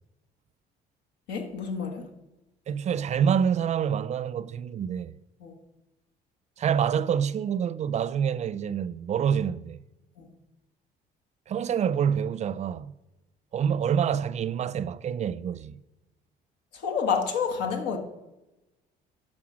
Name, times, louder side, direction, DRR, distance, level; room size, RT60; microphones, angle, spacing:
voice 1, 1.3-2.1 5.4-5.6 10.2-10.3 16.7-18.0, left 6 dB, 90° left, 1.5 m, -29 dB
voice 2, 2.7-5.2 6.6-9.8 11.5-12.9 13.5-15.7, right 8 dB, 45° right, 0.4 m, -27 dB
12.0 x 4.4 x 6.2 m
cardioid pair, 110°, 17 cm